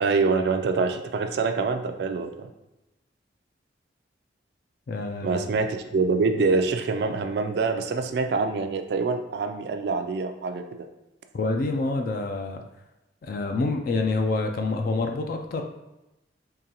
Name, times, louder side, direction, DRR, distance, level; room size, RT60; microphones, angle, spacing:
voice 1, 0.0-2.5 5.2-10.6, right 4 dB, 60° right, 7 dB, 0.3 m, -25 dB
voice 2, 4.9-5.5 11.3-12.6 13.2-15.6, left 3 dB, 50° left, 4 dB, 0.3 m, -27 dB
3.8 x 3.0 x 2.8 m, 0.95 s
head